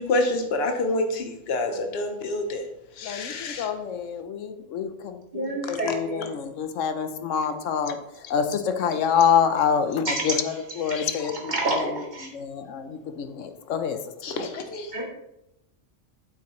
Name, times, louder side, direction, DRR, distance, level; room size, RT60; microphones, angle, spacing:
voice 1, 0.0-2.6 3.0-3.7 5.9-6.0 14.2-14.9, left 2 dB, 60° left, 5 dB, 1.2 m, -27 dB
voice 2, 3.0-8.0 8.3-14.0, left 7 dB, 90° left, 8 dB, 1.1 m, -27 dB
voice 3, 5.3-6.2 10.1-10.2 11.5-11.9 14.9-15.0, right 2 dB, 35° right, -2 dB, 2.2 m, -27 dB
8.5 x 8.1 x 3.1 m, 0.86 s
omnidirectional pair, 1.3 m